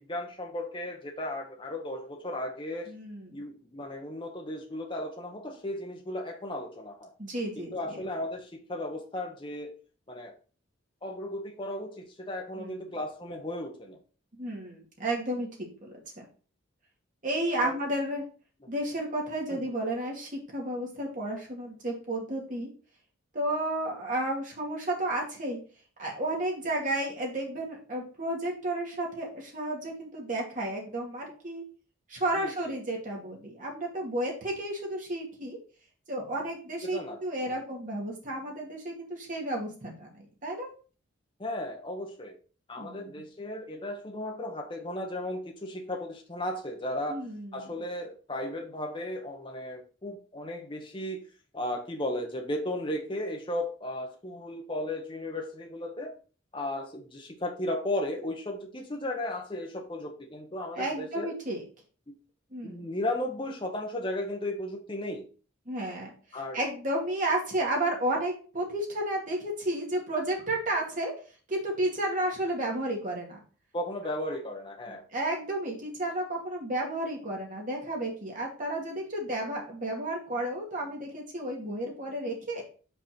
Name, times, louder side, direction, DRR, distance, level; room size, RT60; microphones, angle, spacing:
voice 1, 0.0-2.9 3.3-7.1 7.6-9.8 10.1-10.3 11.0-14.0 17.6-17.8 19.5-19.7 32.3-32.5 36.8-37.2 37.5-37.6 41.4-42.4 42.7-47.2 47.5-51.2 51.5-56.1 56.5-61.3 62.1-62.2 62.6-65.3 66.3-66.6 73.7-75.0, left 1 dB, 25° left, 2 dB, 1.0 m, -35 dB
voice 2, 2.9-3.4 7.2-8.0 12.6-12.9 14.4-15.9 17.2-18.2 18.7-22.7 23.3-25.6 26.0-31.6 32.1-35.6 36.1-40.7 42.8-43.2 47.1-47.7 60.7-61.6 62.5-62.9 65.7-66.1 66.5-71.1 71.5-73.4 74.9-82.6, right 1 dB, 40° right, -1 dB, 2.1 m, -32 dB
5.5 x 4.3 x 4.4 m, 0.38 s
head